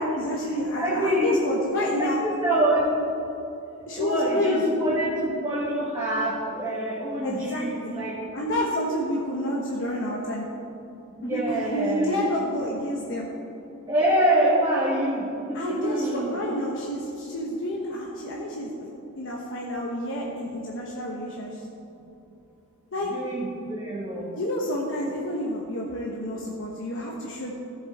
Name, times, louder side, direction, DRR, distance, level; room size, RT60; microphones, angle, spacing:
voice 1, 0.0-2.2 3.9-4.6 7.2-7.9 8.3-10.5 11.2-13.3 15.5-18.9 19.2-21.7 22.9-23.1 24.3-27.5, left 1 dB, 60° left, -3 dB, 1.1 m, -29 dB
voice 2, 0.7-1.4 2.0-2.8 4.0-8.1 11.2-12.2 13.9-16.4 23.1-24.3, right 1 dB, 20° right, -6 dB, 1.4 m, -25 dB
13.5 x 7.1 x 4.2 m, 2.8 s
head